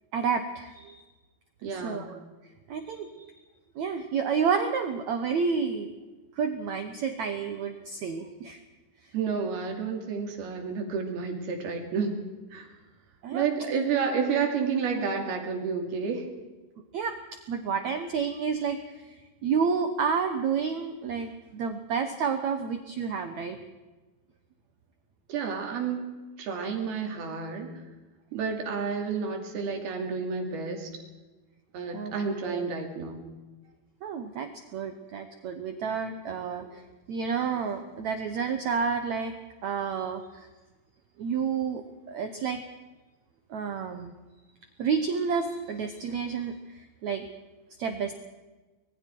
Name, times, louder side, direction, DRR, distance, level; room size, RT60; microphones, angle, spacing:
voice 1, 0.1-1.0 1.7-2.2 2.7-3.4 3.7-5.9 6.4-8.6 9.0-9.1 13.2-13.4 16.9-17.2 17.5-23.6 31.9-32.1 32.4-32.7 34.0-36.8 37.1-39.4 39.6-40.5 41.2-42.6 43.5-44.1 44.8-47.3 47.8-48.1, right 6 dB, 90° right, 7 dB, 1.6 m, -30 dB
voice 2, 1.6-2.1 9.1-12.2 12.5-12.7 13.3-16.3 25.3-27.7 28.3-30.9 31.7-33.2, right 5 dB, 65° right, 3 dB, 4.4 m, -30 dB
25.0 x 22.0 x 4.6 m, 1.2 s
omnidirectional pair, 5.0 m